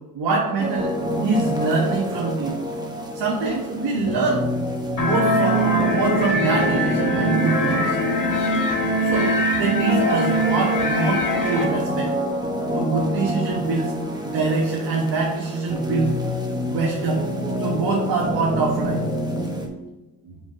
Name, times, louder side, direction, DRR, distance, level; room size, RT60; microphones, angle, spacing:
voice 1, 0.1-2.6 3.1-4.4 5.0-8.0 9.0-12.1 12.7-13.9 14.2-16.1 16.7-17.3 17.5-19.0, right 3 dB, 65° right, -3 dB, 1.4 m, -24 dB
sound 1, 0.6-19.7, equal, 10° right, 1.3 m, -27 dB
sound 2, 5.0-11.6, equal, 45° left, 1.5 m, -22 dB
5.6 x 3.9 x 5.0 m, 1.1 s
supercardioid pair, 60°, 44 cm